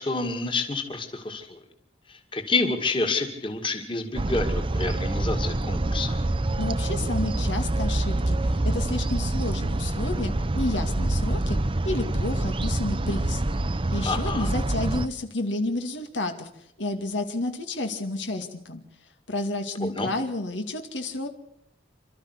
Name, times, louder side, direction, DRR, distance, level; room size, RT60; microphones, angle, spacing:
voice 1, 0.0-1.6 2.1-6.2 14.1-14.5 19.8-20.1, left 3 dB, 25° left, 5 dB, 2.3 m, -28 dB
sound 1, 4.1-15.1, right 1 dB, 30° right, 0.7 m, -26 dB
voice 2, 6.6-11.6 11.8-13.4 13.7-16.5 16.8-18.8 19.3-21.3, left 2 dB, 85° left, 5 dB, 2.4 m, -30 dB
28.0 x 13.0 x 8.2 m, 0.74 s
head